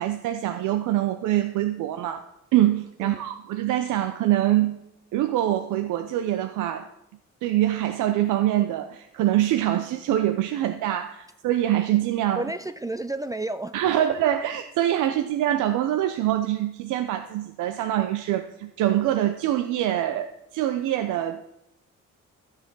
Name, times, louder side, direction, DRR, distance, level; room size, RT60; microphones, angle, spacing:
voice 1, 0.0-2.3 2.5-4.8 5.1-6.9 7.4-12.5 13.7-21.4, right 13 dB, 90° right, 7 dB, 0.7 m, -24 dB
voice 2, 12.4-14.1, right 2 dB, 10° right, 11 dB, 0.4 m, -32 dB
13.0 x 6.6 x 6.1 m, 0.84 s
cardioid pair, 90°, 30 cm